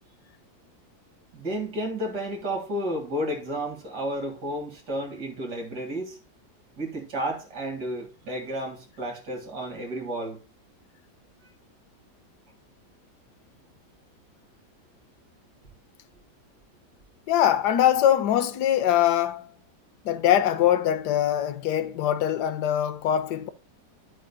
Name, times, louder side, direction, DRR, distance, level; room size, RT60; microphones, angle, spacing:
voice 1, 1.3-6.2 6.8-10.4, equal, 80° right, 2.9 m, -32 dB
voice 2, 17.3-19.5 20.0-23.5, left 11 dB, 80° left, 1.3 m, -22 dB
11.5 x 7.5 x 2.3 m
omnidirectional pair, 1.8 m